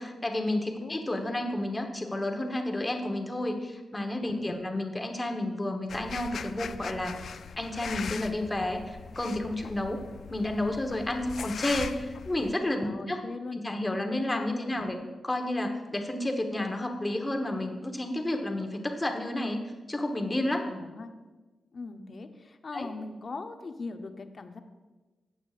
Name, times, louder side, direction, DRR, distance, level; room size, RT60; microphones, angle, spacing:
voice 1, 0.0-10.0 10.3-13.2 13.5-15.0 15.2-19.6 19.9-20.7 22.7-22.9, left 1 dB, 15° left, 4 dB, 1.1 m, -31 dB
voice 2, 4.3-4.6 12.8-13.6 14.3-14.9 20.6-21.1 21.7-24.6, left 3 dB, 45° left, 7 dB, 0.7 m, -40 dB
sound 1, 5.9-12.5, left 6 dB, 70° left, 0.4 m, -40 dB
15.0 x 8.7 x 2.5 m, 1.2 s
wide cardioid pair, 115°, 0 cm